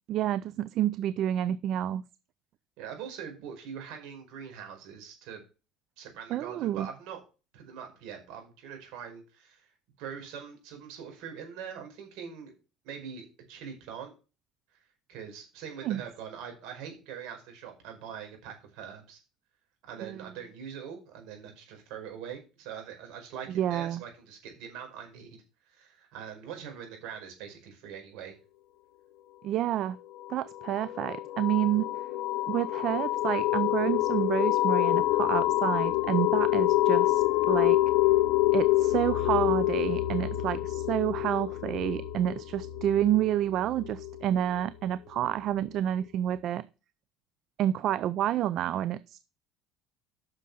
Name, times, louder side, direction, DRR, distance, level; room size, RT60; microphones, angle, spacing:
voice 1, 0.1-2.0 6.3-6.9 15.8-16.0 20.0-20.2 23.5-24.0 29.4-30.0 30.3-31.8 32.5-37.8 38.5-46.6 47.6-49.2, right 12 dB, 55° right, 0.5 m, -29 dB
voice 2, 2.8-5.4 6.0-7.2 7.5-9.7 10.0-12.5 12.8-14.1 14.7-14.8 15.1-19.2 19.8-25.4 25.7-28.3, right 7 dB, 75° right, 5.1 m, -43 dB
sound 1, 30.2-44.6, left 16 dB, 75° left, 0.9 m, -27 dB
8.5 x 6.5 x 5.6 m
supercardioid pair, 105°, 0 cm